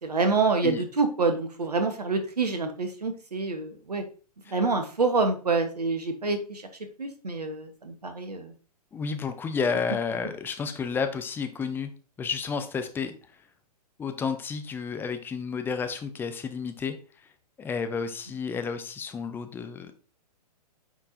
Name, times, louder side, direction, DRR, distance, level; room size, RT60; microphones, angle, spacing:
voice 1, 0.0-4.0 4.5-6.6 7.0-8.5, right 3 dB, 75° right, 7 dB, 1.1 m, -27 dB
voice 2, 8.9-11.9 12.2-13.1 14.0-16.9 17.6-19.9, left 5 dB, 10° left, 8 dB, 0.6 m, -31 dB
8.8 x 4.4 x 2.7 m, 0.37 s
figure-of-eight pair, 115°, 20 cm